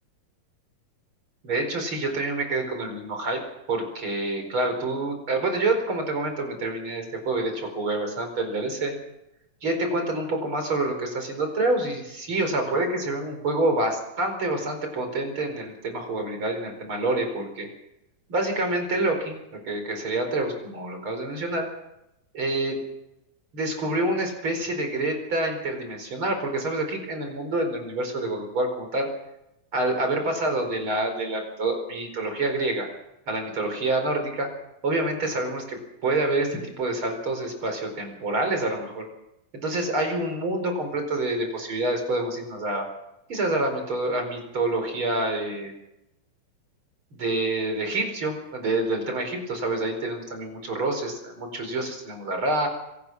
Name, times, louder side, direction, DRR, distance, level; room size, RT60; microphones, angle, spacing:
voice 1, 1.4-3.4 3.7-8.9 9.6-17.7 18.3-21.7 22.3-22.8 23.5-29.1 29.7-32.9 33.3-34.5 34.8-39.1 39.5-42.9 43.3-45.7 47.1-52.7, right 2 dB, 35° right, 5 dB, 5.2 m, -27 dB
25.0 x 18.0 x 6.1 m, 0.87 s
omnidirectional pair, 4.1 m